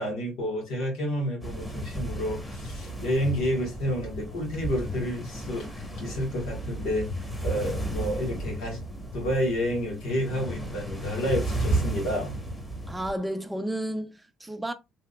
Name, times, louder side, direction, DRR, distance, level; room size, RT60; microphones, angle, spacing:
voice 1, 0.0-7.1 7.4-8.8 9.1-12.3, equal, 75° left, 1.5 m, -30 dB
sound 1, 1.4-13.1, right 1 dB, 10° left, 1.2 m, -33 dB
voice 2, 12.9-14.7, right 1 dB, 10° right, 0.6 m, -32 dB
3.2 x 2.8 x 2.3 m
hypercardioid pair, 55°, 0 cm